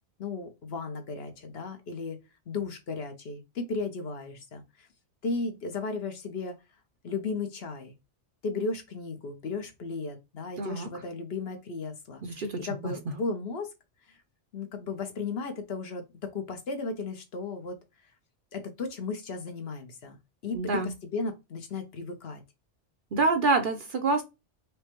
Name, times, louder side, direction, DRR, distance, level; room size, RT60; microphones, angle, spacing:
voice 1, 0.2-2.2 2.5-4.9 5.2-6.6 7.0-7.9 8.4-13.7 14.1-14.2 14.5-17.8 18.5-20.2 20.4-22.4, left 4 dB, 60° left, 1.0 m, -35 dB
voice 2, 10.6-10.9 12.2-12.9 20.5-20.9 23.1-24.2, right 3 dB, 55° right, 0.7 m, -27 dB
5.0 x 2.2 x 2.9 m
omnidirectional pair, 1.2 m